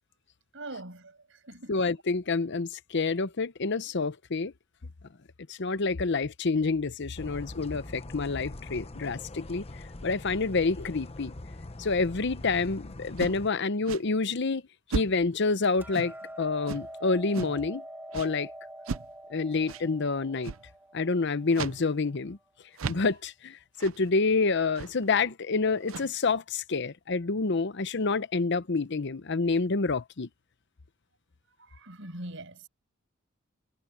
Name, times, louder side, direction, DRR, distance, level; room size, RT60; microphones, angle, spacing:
voice 1, 0.5-1.8 22.8-23.1 31.6-32.7, right 1 dB, 65° right, 6.3 m, -43 dB
voice 2, 1.7-4.5 5.5-9.6 10.0-11.3 11.8-14.6 14.9-17.8 18.1-18.5 19.3-20.5 20.9-22.4 22.9-30.3, left 4 dB, 60° left, 0.8 m, -28 dB
sound 1, 7.2-13.5, left 2 dB, 30° left, 0.9 m, -43 dB
sound 2, 13.2-13.5 13.9-14.1 14.9-15.3 15.9-16.3 16.7-16.9 17.3-17.6 18.1-18.3 18.9-19.1 19.7-19.8 20.4-20.7 21.5-21.8 22.2-22.3 22.8-23.2 23.8-24.0 24.8-25.0 25.8-26.2, right 5 dB, 90° right, 0.6 m, -36 dB
Hammer, 15.8-22.0, right 1 dB, 10° right, 1.3 m, -45 dB
head